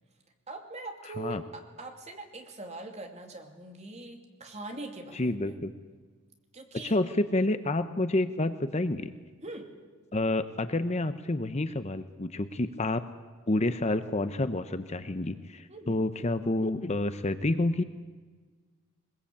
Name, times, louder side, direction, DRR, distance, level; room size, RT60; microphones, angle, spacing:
voice 1, 0.5-5.6 6.5-7.0 9.4-9.7 15.7-16.0, right 2 dB, 30° right, 4 dB, 2.8 m, -42 dB
voice 2, 5.1-5.7 6.8-9.1 10.1-13.0 13.5-17.8, left 2 dB, 30° left, 11 dB, 0.8 m, -29 dB
22.0 x 21.0 x 8.6 m, 1.4 s
head